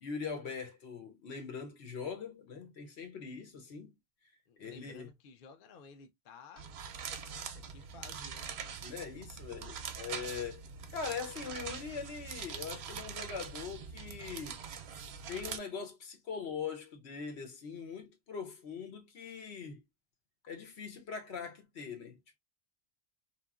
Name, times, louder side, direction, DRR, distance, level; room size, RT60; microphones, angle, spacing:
voice 1, 0.0-3.9 4.6-5.1 8.8-10.6 10.9-14.6 15.3-19.8 20.4-22.4, left 6 dB, 85° left, 1.1 m, -42 dB
voice 2, 4.5-6.7 7.3-8.5, left 5 dB, 60° left, 0.7 m, -55 dB
sound 1, 6.6-15.6, right 6 dB, 80° right, 0.8 m, -43 dB
2.8 x 2.4 x 2.2 m
omnidirectional pair, 1.1 m